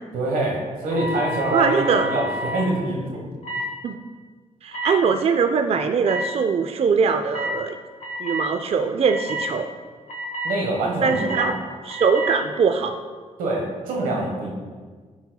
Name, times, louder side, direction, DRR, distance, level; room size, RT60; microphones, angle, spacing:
voice 1, 0.1-3.2 10.4-11.5 13.4-14.5, right 2 dB, 85° right, 0 dB, 1.2 m, -25 dB
sound 1, 0.8-2.7 3.4-3.7 4.7-4.9 6.0-6.2 7.3-7.5 8.0-8.5 9.0-9.5 10.1-10.5 11.0-11.5 11.9-12.3, equal, 55° left, 1.2 m, -30 dB
voice 2, 1.5-2.1 3.8-4.0 4.6-7.7 8.2-9.7 11.0-11.6 11.9-13.0, right 5 dB, 45° right, 7 dB, 0.4 m, -21 dB
11.5 x 4.2 x 2.3 m, 1.5 s
cardioid pair, 65°, 14 cm